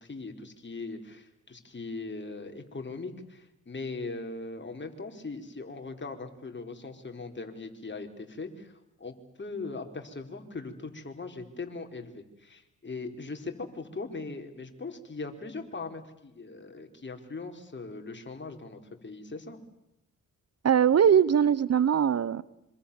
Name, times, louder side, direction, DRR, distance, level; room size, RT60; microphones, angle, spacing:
voice 1, 0.0-8.7 9.0-19.6, left 3 dB, 35° left, 4 dB, 4.8 m, -40 dB
voice 2, 20.6-22.4, right 8 dB, 50° right, 20 dB, 1.0 m, -21 dB
26.5 x 26.0 x 7.3 m, 0.88 s
supercardioid pair, 50°, 32 cm